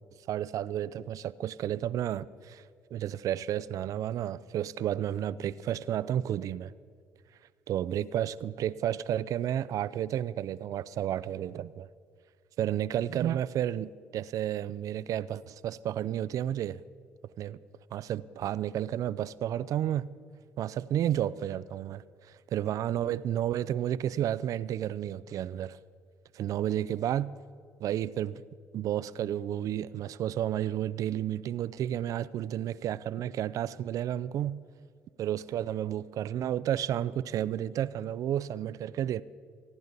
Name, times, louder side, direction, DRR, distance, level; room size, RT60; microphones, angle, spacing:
voice 1, 0.3-2.6 2.9-6.7 7.7-11.9 12.6-16.8 17.4-17.6 17.9-20.1 20.6-25.8 26.3-27.3 27.8-28.4 28.7-34.6 35.2-39.2, right 11 dB, 60° right, 0.4 m, -31 dB
25.0 x 11.0 x 4.0 m
hypercardioid pair, 55°, 7 cm